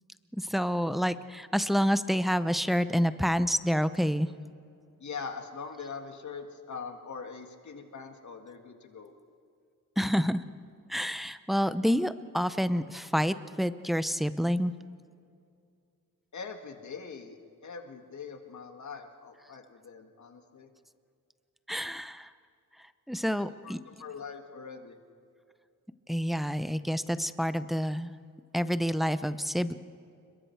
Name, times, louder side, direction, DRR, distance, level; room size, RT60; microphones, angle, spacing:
voice 1, 0.5-4.3 10.0-10.4 10.9-14.7 21.7-22.3 23.1-23.8 26.1-28.1 28.5-29.7, equal, ahead, 12 dB, 0.6 m, -28 dB
voice 2, 5.0-9.1 16.3-17.4 17.6-20.7 23.4-25.0, left 5 dB, 60° left, 5 dB, 1.9 m, -42 dB
29.0 x 22.0 x 4.6 m, 2.4 s
wide cardioid pair, 140°, 33 cm